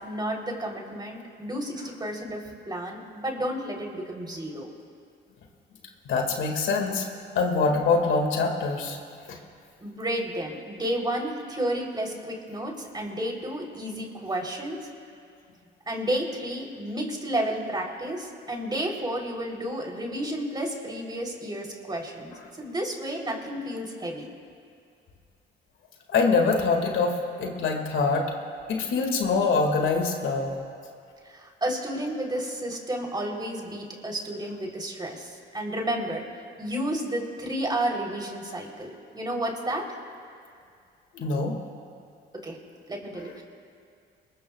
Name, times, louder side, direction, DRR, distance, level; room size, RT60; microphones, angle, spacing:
voice 1, 0.0-2.4 2.7-4.7 9.8-14.8 15.9-24.3 31.3-36.2 36.6-39.9 42.4-42.6 42.9-43.4, right 1 dB, 20° right, -1 dB, 3.5 m, -31 dB
voice 2, 6.1-7.1 7.4-9.0 9.3-9.4 26.1-28.2 28.7-30.6 41.1-41.5, left 4 dB, 75° left, 2 dB, 2.1 m, -24 dB
27.0 x 21.0 x 2.4 m, 2.3 s
cardioid pair, 90°, 20 cm